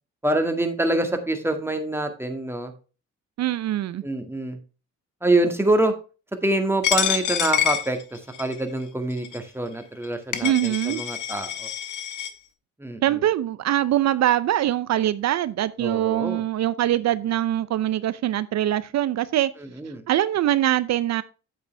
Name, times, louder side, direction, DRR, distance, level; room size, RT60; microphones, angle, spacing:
voice 1, 0.2-2.7 4.0-4.6 5.2-5.9 6.4-11.7 12.8-13.2 15.8-16.4 19.6-20.0, right 1 dB, 10° right, 1.9 m, -25 dB
voice 2, 3.4-4.0 10.4-11.0 13.0-19.5 20.1-21.2, right 12 dB, 65° right, 0.6 m, -23 dB
Coin (dropping), 6.8-8.6 9.2-9.4 10.0-10.1 10.3-12.3, left 10 dB, 80° left, 1.3 m, -26 dB
8.7 x 8.2 x 3.3 m
cardioid pair, 90°, 30 cm